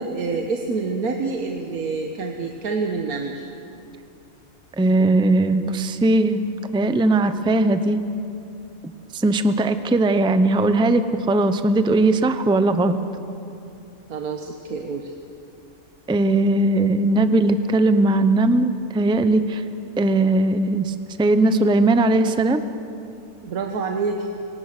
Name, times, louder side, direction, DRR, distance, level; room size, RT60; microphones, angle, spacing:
voice 1, 0.0-3.5 14.1-15.1 23.4-24.3, right 4 dB, 85° right, 3 dB, 1.6 m, -27 dB
voice 2, 4.8-6.4 6.7-8.0 8.8-13.0 16.1-19.6 20.0-22.6, right 2 dB, 5° right, 10 dB, 0.4 m, -19 dB
25.0 x 18.0 x 6.6 m, 2.7 s
omnidirectional pair, 1.5 m